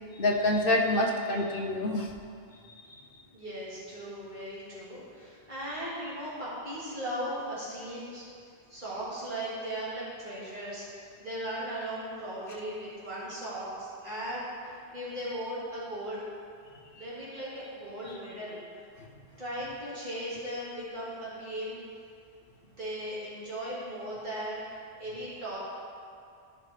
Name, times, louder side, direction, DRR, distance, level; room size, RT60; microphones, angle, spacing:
voice 1, 0.2-2.1 16.9-17.0, left 1 dB, 60° left, 1 dB, 1.0 m, -26 dB
voice 2, 3.3-8.2 8.7-16.2 16.9-18.6 19.4-21.8 22.6-25.6, right 1 dB, 50° right, -9 dB, 2.3 m, -37 dB
14.0 x 5.3 x 3.3 m, 2.3 s
omnidirectional pair, 1.1 m